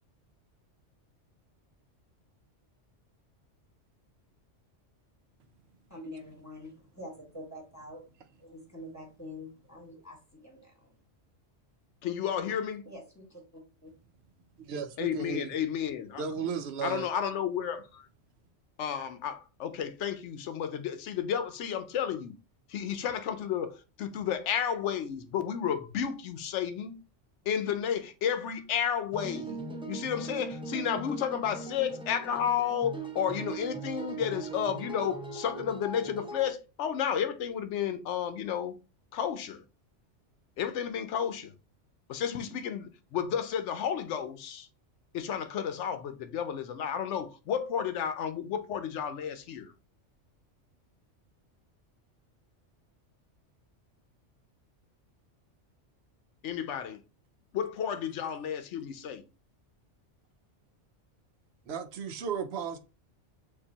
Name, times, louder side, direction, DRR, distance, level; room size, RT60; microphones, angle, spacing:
voice 1, 5.9-8.1 8.4-11.0 12.8-14.0, left 1 dB, 15° left, 1.7 m, -46 dB
voice 2, 12.0-12.8 15.0-16.2 16.8-18.1 18.8-22.3 22.7-27.0 27.5-38.7 39.1-39.6 40.6-41.5 42.1-44.7 45.1-49.7 56.4-57.0 57.5-59.2, left 8 dB, 75° left, 1.0 m, -32 dB
voice 3, 14.6-15.6 16.2-17.1 61.7-62.8, right 6 dB, 65° right, 0.9 m, -35 dB
sound 1, 29.1-36.5, right 3 dB, 5° right, 0.6 m, -40 dB
6.6 x 2.7 x 2.8 m
omnidirectional pair, 1.2 m